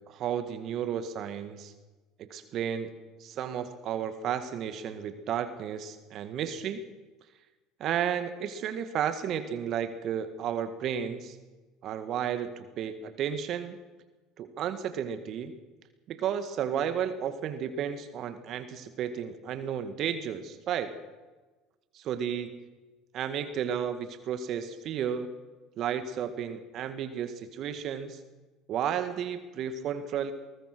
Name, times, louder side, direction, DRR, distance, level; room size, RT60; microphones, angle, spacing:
voice 1, 0.1-1.7 2.2-2.9 3.2-6.8 7.8-11.4 11.8-13.8 14.4-15.5 16.1-20.9 21.9-22.6 23.1-25.3 25.8-28.2 28.7-30.3, right 8 dB, 55° right, 10 dB, 1.8 m, -33 dB
22.0 x 19.0 x 6.2 m, 1.2 s
hypercardioid pair, 75°, 0 cm